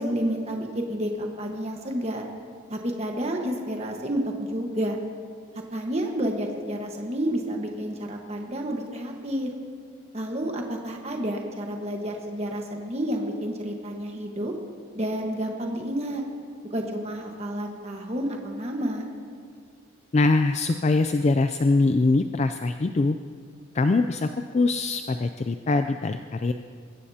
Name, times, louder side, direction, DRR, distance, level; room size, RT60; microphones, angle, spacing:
voice 1, 0.0-2.2 2.7-5.0 5.7-9.5 10.1-14.5 14.9-16.2 16.7-19.1, equal, 30° right, 1 dB, 1.4 m, -30 dB
voice 2, 20.1-23.2 23.7-26.5, left 3 dB, 30° left, 8 dB, 0.3 m, -23 dB
22.0 x 15.0 x 2.8 m, 2.1 s
head